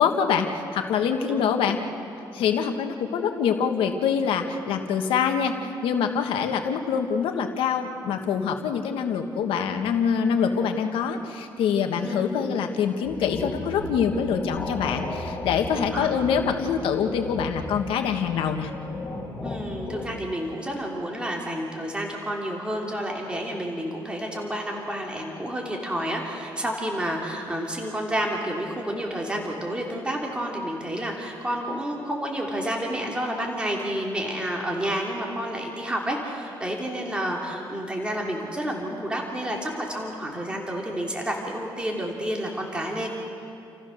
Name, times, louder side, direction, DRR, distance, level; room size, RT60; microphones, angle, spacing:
voice 1, 0.0-1.8 2.3-18.7, left 7 dB, 90° left, 5 dB, 1.5 m, -25 dB
voice 2, 12.0-12.6 15.9-16.1 19.4-43.1, equal, 10° right, -1 dB, 3.1 m, -30 dB
sound 1, 13.0-20.1, left 2 dB, 25° left, 4.8 m, -35 dB
29.5 x 15.0 x 6.5 m, 2.6 s
cardioid pair, 105°, 9 cm